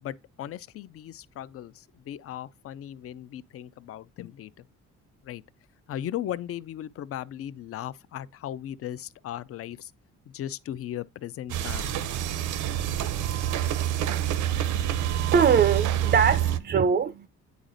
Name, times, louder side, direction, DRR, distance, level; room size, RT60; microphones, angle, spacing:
voice 1, 0.0-4.7 5.2-5.4 5.9-9.9 10.3-12.0, left 11 dB, 50° left, 0.4 m, -37 dB
sound 1, 11.5-16.6, right 11 dB, 80° right, 0.6 m, -27 dB
voice 2, 15.3-17.3, right 7 dB, 35° right, 0.4 m, -22 dB
9.2 x 4.0 x 2.5 m
cardioid pair, 90°, 30 cm